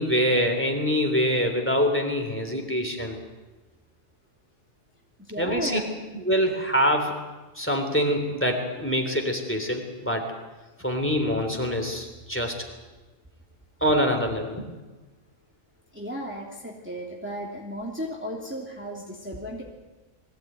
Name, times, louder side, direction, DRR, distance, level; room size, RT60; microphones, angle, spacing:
voice 1, 0.0-3.2 5.4-5.8 6.2-7.2 7.6-10.3 10.8-12.5 13.8-14.7, equal, 10° left, 3 dB, 3.3 m, -25 dB
voice 2, 5.2-5.9 15.9-19.6, equal, 10° right, -2 dB, 2.8 m, -34 dB
22.5 x 16.5 x 9.3 m, 1.2 s
omnidirectional pair, 1.4 m